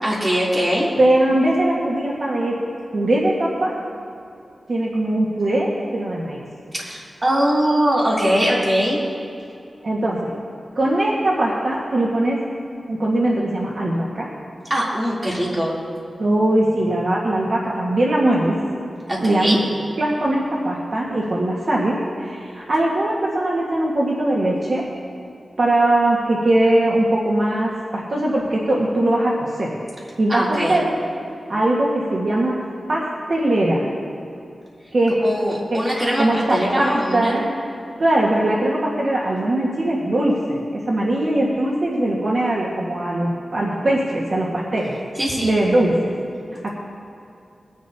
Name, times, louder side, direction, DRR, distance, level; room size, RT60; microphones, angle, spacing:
voice 1, 0.0-0.9 6.7-9.0 14.7-15.7 19.1-19.6 30.3-30.7 35.2-37.5 45.2-45.6, equal, 25° right, -5 dB, 3.2 m, -21 dB
voice 2, 1.0-2.5 2.9-3.7 4.7-6.4 9.8-10.3 10.7-12.4 12.9-14.3 16.2-18.5 19.2-19.6 20.0-24.8 25.6-29.8 30.2-30.9 31.5-32.6 32.9-33.9 34.9-35.2 35.7-35.8 36.2-37.4 38.0-40.6 40.9-45.0 45.4-46.1 46.6-46.7, right 1 dB, 55° right, -4 dB, 1.6 m, -20 dB
22.0 x 10.5 x 2.8 m, 2.6 s
wide cardioid pair, 105°, 0 cm